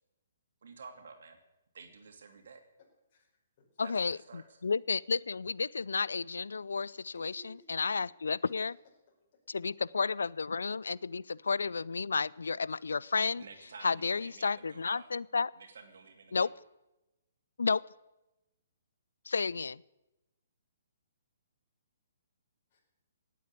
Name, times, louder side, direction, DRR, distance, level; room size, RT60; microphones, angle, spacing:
voice 1, 0.6-1.4 1.7-2.6 3.8-4.4 13.4-15.1 15.6-16.5, right 5 dB, 70° right, 5 dB, 2.8 m, -51 dB
voice 2, 2.8-3.3 3.6-3.8 6.7-7.9 8.4-8.5 9.1-9.2 22.7-22.8, left 2 dB, 45° left, -3 dB, 4.9 m, -61 dB
voice 3, 3.8-8.7 9.5-13.4 13.8-15.5 16.3-16.5 17.6-17.8 19.3-19.8, left 4 dB, 80° left, 22 dB, 0.4 m, -32 dB
18.0 x 8.5 x 8.3 m, 0.97 s
hypercardioid pair, 140°, 0 cm